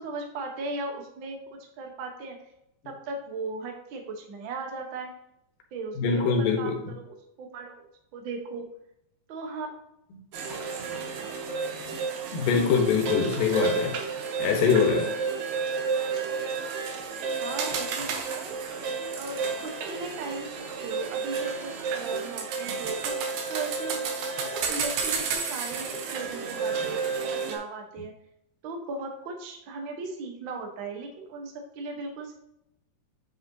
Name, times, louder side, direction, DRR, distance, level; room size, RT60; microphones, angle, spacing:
voice 1, 0.0-2.4 2.8-5.1 5.7-7.8 8.1-8.7 9.3-9.7 17.4-18.6 19.1-24.0 24.4-28.1 28.6-32.4, right 3 dB, 65° right, 1.2 m, -37 dB
voice 2, 6.0-6.8 10.5-10.6 11.5-11.7 12.3-14.0 14.4-15.1, left 5 dB, 80° left, 2.8 m, -24 dB
sound 1, 10.3-27.6, right 5 dB, 90° right, 2.7 m, -31 dB
8.5 x 5.2 x 2.8 m
omnidirectional pair, 3.9 m